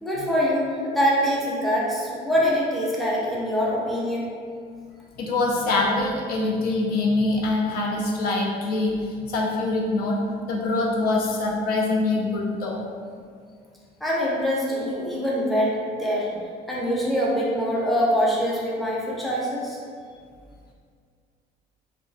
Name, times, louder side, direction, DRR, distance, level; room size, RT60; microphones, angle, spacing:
voice 1, 0.0-4.3 14.0-16.3 16.7-19.8, equal, ahead, -6 dB, 0.5 m, -24 dB
voice 2, 5.2-10.2 10.5-12.8, left 2 dB, 60° left, -2 dB, 0.4 m, -24 dB
2.3 x 2.2 x 2.5 m, 2.1 s
cardioid pair, 110°, 17 cm